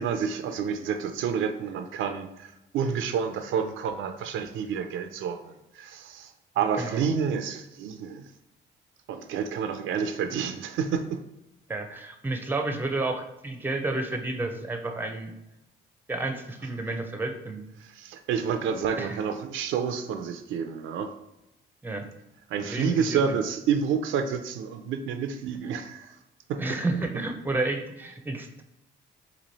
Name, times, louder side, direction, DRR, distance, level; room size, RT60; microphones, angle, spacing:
voice 1, 0.0-8.3 9.1-11.2 17.8-21.1 22.5-26.2 26.5-26.6, right 7 dB, 75° right, 7 dB, 0.4 m, -29 dB
voice 2, 11.7-15.3 16.1-17.6 19.0-19.2 21.8-22.1 22.6-23.4 26.6-28.6, right 2 dB, 10° right, 5 dB, 0.5 m, -31 dB
3.0 x 2.8 x 4.0 m, 0.90 s
cardioid pair, 90°, 20 cm